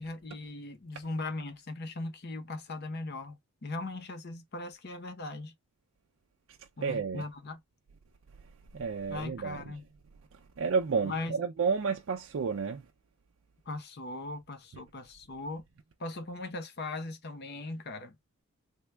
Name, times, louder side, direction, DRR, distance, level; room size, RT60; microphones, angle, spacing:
voice 1, 0.0-5.5 6.8-7.6 9.1-9.8 11.0-11.4 13.7-15.6 16.0-18.2, left 2 dB, 50° left, 0.7 m, -39 dB
voice 2, 6.8-7.2 8.7-9.6 10.6-12.8, right 5 dB, 60° right, 0.4 m, -31 dB
3.4 x 2.2 x 3.2 m
head